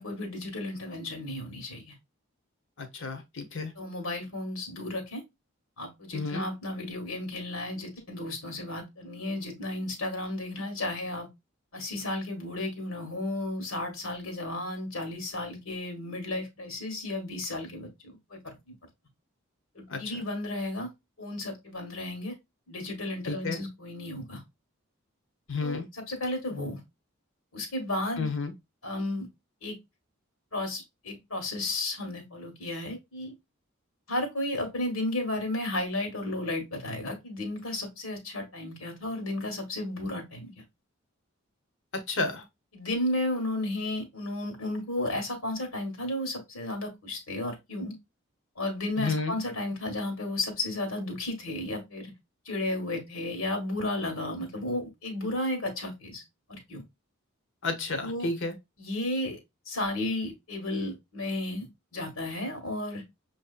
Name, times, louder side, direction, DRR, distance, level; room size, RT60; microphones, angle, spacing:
voice 1, 0.0-1.9 3.8-5.2 5.8-11.3 11.7-18.4 19.7-20.9 21.2-22.3 22.7-24.4 25.6-26.8 27.5-28.3 28.8-29.3 29.6-29.8 30.5-33.3 34.1-40.5 42.7-48.0 48.6-52.1 52.4-56.2 56.5-56.8 58.0-58.3 58.8-59.4 59.7-61.7 61.9-63.0, left 1 dB, 85° left, 1.4 m, -33 dB
voice 2, 2.8-3.7 6.1-6.4 19.9-20.0 23.2-23.6 25.5-25.8 28.2-28.5 41.9-42.4 49.0-49.3 57.6-58.5, left 3 dB, 60° left, 1.0 m, -31 dB
6.1 x 2.7 x 2.4 m
head